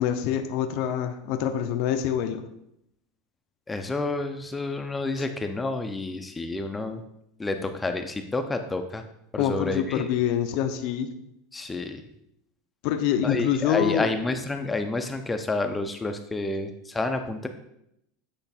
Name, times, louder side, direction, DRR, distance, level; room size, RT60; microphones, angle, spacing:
voice 1, 0.0-2.4 9.4-11.1 12.8-14.1, left 9 dB, 60° left, 8 dB, 0.5 m, -26 dB
voice 2, 3.7-7.0 7.4-9.0 9.3-10.1 11.5-12.0 13.2-17.5, left 2 dB, 10° left, 6 dB, 0.4 m, -29 dB
8.0 x 3.3 x 4.2 m, 0.78 s
supercardioid pair, 130°, 0 cm